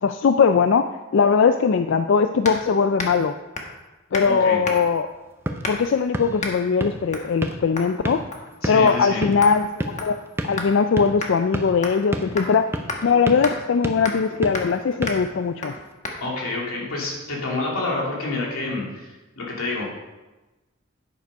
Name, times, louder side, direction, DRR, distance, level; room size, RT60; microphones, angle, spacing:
voice 1, 0.0-3.3 4.1-5.1 5.7-8.2 8.7-10.2 10.4-12.7 13.0-15.7, left 5 dB, 60° left, 8 dB, 0.4 m, -20 dB
sound 1, 2.4-2.6 3.0-3.2 3.6-3.8 4.1-4.3 4.6-5.0 5.6-5.9 6.4-6.6 7.1-7.3 7.8-7.9 8.3-8.6 8.9-9.0 9.4-10.7 11.2-11.3 11.8-12.1 12.4-12.5 12.9-13.0 13.4-13.6 14.0-14.3 14.5-14.8 15.1-15.2 15.6-15.8 16.0-16.2, left 3 dB, 35° left, 1.2 m, -31 dB
voice 2, 4.2-4.6 8.6-9.3 16.2-19.8, left 2 dB, 90° left, -3 dB, 2.8 m, -28 dB
sound 2, 5.1-15.9, right 1 dB, 10° right, 0.6 m, -33 dB
9.5 x 6.7 x 5.3 m, 1.1 s
head